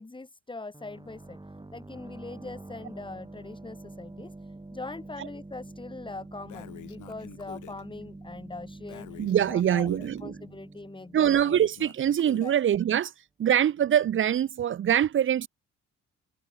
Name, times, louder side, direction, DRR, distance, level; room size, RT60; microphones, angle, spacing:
voice 1, 0.0-1.4 1.7-9.2 9.5-9.9 10.2-11.4 12.4-12.5, left 3 dB, 15° left, 2.2 m, -42 dB
sound 1, 0.7-12.2, right 2 dB, 15° right, 7.7 m, -46 dB
Breathing, 6.5-7.8 8.9-10.2 11.3-12.6, left 13 dB, 80° left, 3.4 m, -46 dB
voice 2, 9.2-10.4 11.1-13.1 13.4-15.5, right 10 dB, 40° right, 0.6 m, -24 dB
cardioid pair, 90°, 30 cm